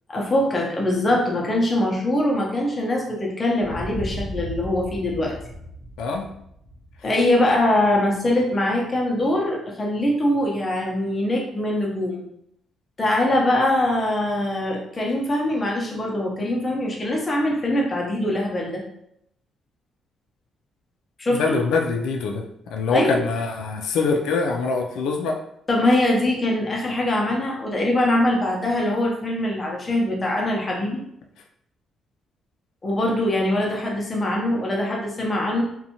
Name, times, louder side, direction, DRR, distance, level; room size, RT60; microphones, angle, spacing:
voice 1, 0.1-5.3 7.0-12.2 13.0-18.8 21.2-21.6 22.9-23.2 25.7-31.0 32.8-35.6, left 1 dB, 20° left, -2 dB, 0.5 m, -22 dB
sound 1, 3.6-8.2, equal, 60° right, 0.9 m, -36 dB
voice 2, 21.3-22.4 22.7-25.4, left 4 dB, 90° left, 2 dB, 0.3 m, -24 dB
2.6 x 2.1 x 2.7 m, 0.76 s
cardioid pair, 165°, 0 cm